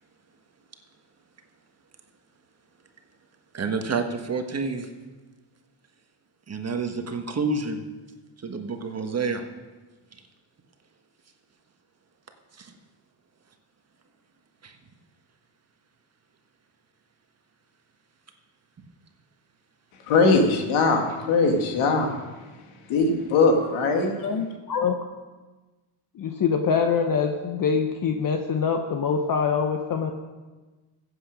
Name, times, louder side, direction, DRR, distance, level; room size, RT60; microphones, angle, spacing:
voice 1, 3.5-4.9 6.5-7.8 8.4-9.4 12.5-12.7 14.6-14.7, right 4 dB, 30° right, 5 dB, 1.4 m, -29 dB
voice 2, 20.1-22.1 22.9-24.2, left 3 dB, 80° left, 3 dB, 2.0 m, -21 dB
voice 3, 24.2-25.0 26.1-30.1, left 6 dB, 45° left, 5 dB, 1.0 m, -24 dB
15.0 x 8.0 x 5.2 m, 1.2 s
cardioid pair, 95°, 49 cm